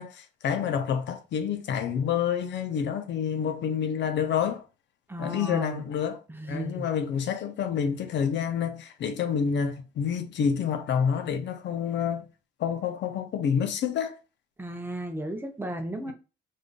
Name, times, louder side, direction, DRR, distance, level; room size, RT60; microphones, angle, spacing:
voice 1, 0.0-4.6 5.2-6.2 6.5-12.3 12.6-14.2 16.1-16.2, left 7 dB, 65° left, 0.5 m, -28 dB
voice 2, 5.1-5.8 6.3-6.9 14.6-16.1, right 1 dB, 10° right, 0.7 m, -34 dB
3.6 x 2.6 x 2.3 m
cardioid pair, 90°, 20 cm